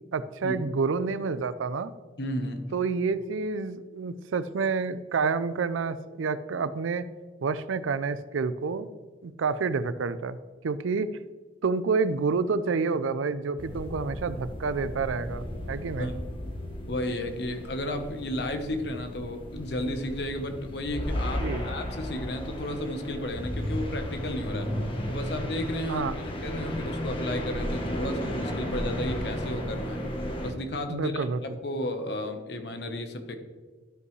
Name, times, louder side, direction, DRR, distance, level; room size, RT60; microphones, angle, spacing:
voice 1, 0.1-1.9 2.7-7.1 7.4-8.9 9.2-10.4 10.6-11.1 11.6-16.1 21.4-21.6 25.9-26.1 30.9-31.4, right 4 dB, 85° right, 14 dB, 0.5 m, -28 dB
voice 2, 2.2-2.6 16.0-16.2 16.9-24.7 25.1-30.0 30.4-33.4, left 1 dB, 55° left, 6 dB, 1.0 m, -33 dB
sound 1, 13.6-30.5, equal, 25° left, 1.0 m, -34 dB
12.0 x 5.3 x 3.2 m, 1.5 s
head